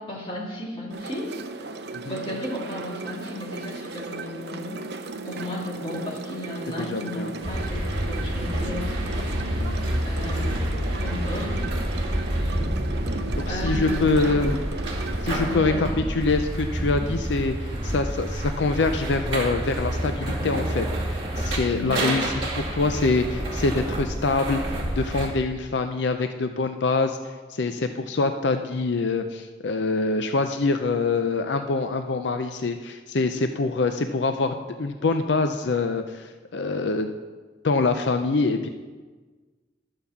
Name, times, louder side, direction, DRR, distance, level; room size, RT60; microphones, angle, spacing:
voice 1, 0.0-1.3 2.0-4.8 5.2-9.3 10.0-11.7 13.5-14.6 15.5-16.0 21.7-22.1, left 1 dB, 30° left, -3 dB, 2.3 m, -34 dB
sound 1, 0.9-15.6, right 3 dB, 65° right, 0.7 m, -36 dB
voice 2, 6.8-7.3 9.6-10.0 13.4-14.6 15.2-17.6 17.8-27.2 27.5-37.1 37.6-38.7, left 3 dB, 80° left, 7 dB, 0.5 m, -25 dB
sound 2, 7.4-25.3, right 1 dB, 30° right, 2.3 m, -28 dB
11.5 x 5.4 x 7.1 m, 1.4 s
head